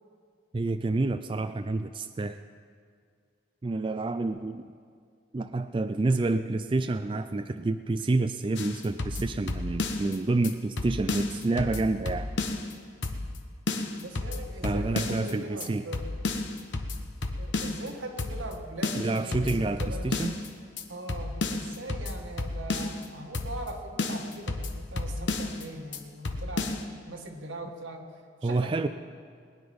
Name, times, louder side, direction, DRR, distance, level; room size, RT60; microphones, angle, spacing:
voice 1, 0.5-2.4 3.6-4.7 5.3-12.3 14.6-15.8 19.0-20.4 28.4-28.9, right 2 dB, 25° right, 9 dB, 0.3 m, -28 dB
sound 1, 8.6-10.2 10.4-10.5 10.8-12.7 13.0-13.4 13.7-15.3 15.6-15.7 15.9-17.9 18.2-18.5 18.8-20.5 20.8-20.9 21.1-23.1 23.3-23.7 24.0-25.6 25.9-26.0 26.2-26.8, left 2 dB, 65° left, 1.0 m, -32 dB
voice 2, 14.0-16.1 17.4-20.1 20.9-26.8 27.1-28.1 28.4-28.9, right 1 dB, 90° right, 2 dB, 1.7 m, -41 dB
20.5 x 9.7 x 5.2 m, 2.1 s
head